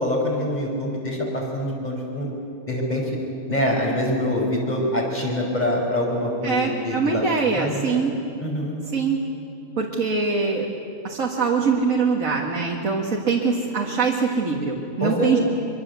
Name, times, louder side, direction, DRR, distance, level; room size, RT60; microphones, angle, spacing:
voice 1, 0.0-2.3 2.7-3.0 3.5-7.2 7.5-8.0 8.4-8.7 15.0-15.3, left 1 dB, 30° left, -2 dB, 5.6 m, -25 dB
voice 2, 6.4-8.2 8.9-9.2 9.8-10.7 11.0-15.4, right 5 dB, 65° right, -1 dB, 2.1 m, -23 dB
25.0 x 24.0 x 8.2 m, 2.6 s
omnidirectional pair, 1.5 m